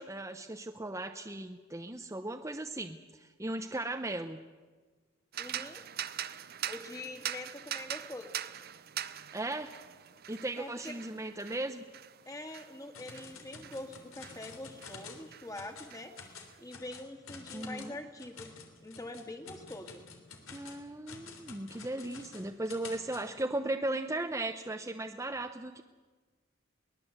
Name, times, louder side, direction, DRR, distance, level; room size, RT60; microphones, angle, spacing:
voice 1, 0.0-4.4 9.3-9.7 10.3-11.8 17.5-17.9 20.5-25.8, right 2 dB, 15° right, 6 dB, 0.8 m, -37 dB
sound 1, 5.3-15.0 15.3-16.6, right 10 dB, 50° right, 0.7 m, -42 dB
voice 2, 5.4-5.8 6.7-8.3 10.6-11.0 12.3-18.5 18.8-20.0, left 2 dB, 15° left, 4 dB, 2.0 m, -44 dB
sound 2, 12.9-15.3 15.5-15.9 16.2-23.2, left 5 dB, 80° left, 3.2 m, -49 dB
23.0 x 19.0 x 8.0 m, 1.4 s
head